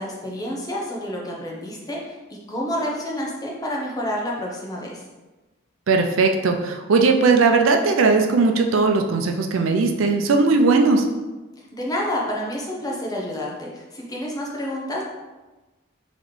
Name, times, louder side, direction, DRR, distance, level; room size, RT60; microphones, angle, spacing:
voice 1, 0.0-5.0 11.6-15.0, left 1 dB, 20° left, -3 dB, 0.7 m, -29 dB
voice 2, 5.9-11.1, right 4 dB, 80° right, 4 dB, 0.4 m, -18 dB
4.0 x 3.0 x 3.1 m, 1.2 s
head